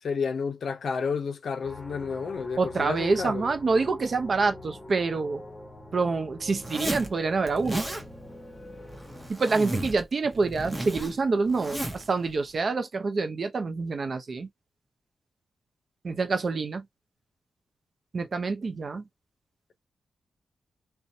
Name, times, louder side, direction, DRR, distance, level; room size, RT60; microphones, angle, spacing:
voice 1, 0.0-3.5, left 5 dB, 70° left, 0.6 m, -31 dB
sound 1, 1.6-9.3, left 1 dB, 10° left, 1.1 m, -44 dB
voice 2, 2.6-5.4 5.9-7.8 9.3-14.5 16.0-16.8 18.1-19.0, right 4 dB, 50° right, 0.6 m, -27 dB
Zipper (clothing), 6.6-7.1 7.5-8.0 8.9-10.0 10.3-12.1, right 1 dB, 15° right, 0.9 m, -33 dB
2.6 x 2.2 x 2.6 m
cardioid pair, 70°, 0 cm